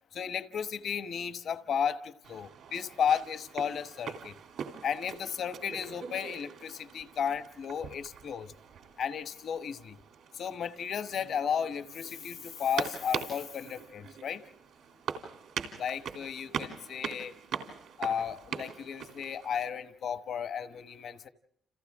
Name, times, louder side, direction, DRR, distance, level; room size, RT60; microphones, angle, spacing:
voice 1, 0.1-4.3 4.8-8.5 9.0-9.9 10.3-14.4 15.8-17.3 18.0-21.3, left 7 dB, 65° left, 10 dB, 1.1 m, -34 dB
sound 1, 2.2-19.7, right 7 dB, 80° right, 3.2 m, -42 dB
29.5 x 28.5 x 3.7 m, 0.68 s
cardioid pair, 90°, 0 cm